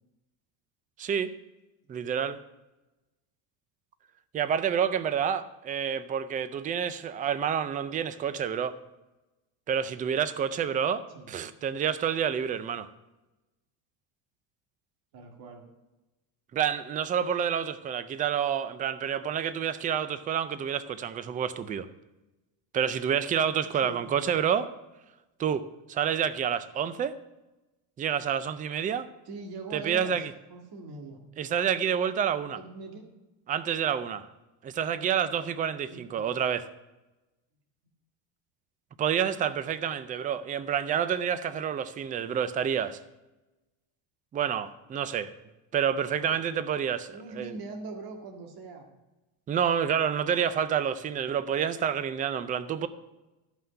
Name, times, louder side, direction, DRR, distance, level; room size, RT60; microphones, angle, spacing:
voice 1, 1.0-1.3 1.9-2.4 4.3-8.8 9.7-12.9 16.5-21.9 22.7-24.7 25.4-27.2 28.0-29.1 29.7-30.3 31.4-32.6 33.5-34.3 34.6-36.6 39.0-43.0 44.3-45.3 45.7-47.6 49.5-52.9, right 8 dB, 20° right, 14 dB, 0.3 m, -28 dB
voice 2, 15.1-15.7 23.6-24.1 29.2-31.2 32.5-33.0 35.9-36.3 47.1-48.9, right 3 dB, 50° right, 2 dB, 2.0 m, -42 dB
12.5 x 5.7 x 7.6 m, 1.0 s
cardioid pair, 140°, 49 cm